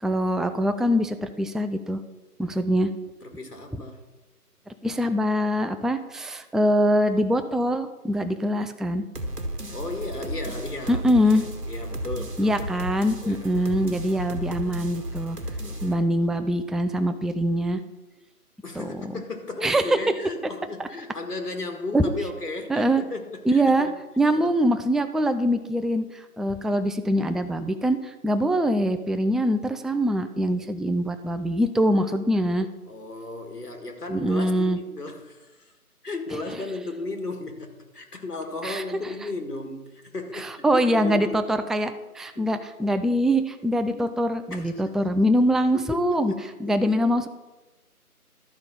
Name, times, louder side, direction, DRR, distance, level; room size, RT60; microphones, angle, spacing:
voice 1, 0.0-2.0 2.4-2.9 4.8-9.0 10.9-11.5 12.4-15.4 15.8-17.8 18.8-19.0 19.6-20.0 20.8-20.9 21.9-22.1 22.7-23.0 23.5-23.9 24.2-32.7 34.1-34.8 38.6-38.8 40.3-46.3 46.6-47.3, equal, ahead, 8 dB, 0.3 m, -23 dB
voice 2, 3.2-4.0 9.7-11.0 11.3-12.6 12.9-13.7 15.6-16.3 18.6-23.9 24.3-24.5 32.9-35.7 36.0-41.4 42.4-42.6 43.9-44.1 44.5-44.7 45.7-47.0, left 2 dB, 90° left, 5 dB, 1.8 m, -35 dB
sound 1, 9.1-15.9, right 1 dB, 85° right, 1.7 m, -34 dB
12.0 x 5.1 x 5.6 m, 1.1 s
figure-of-eight pair, 160°, 46 cm